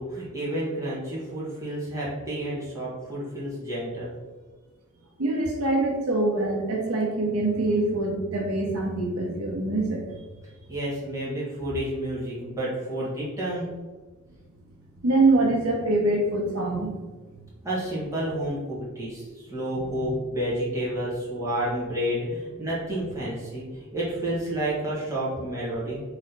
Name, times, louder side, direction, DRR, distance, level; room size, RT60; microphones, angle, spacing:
voice 1, 0.0-4.1 10.7-13.7 17.6-26.0, right 1 dB, 15° right, -8 dB, 1.4 m, -30 dB
voice 2, 5.2-10.0 15.0-16.9 19.8-20.1, right 2 dB, 85° right, 0 dB, 0.9 m, -24 dB
4.2 x 3.2 x 3.9 m, 1.3 s
head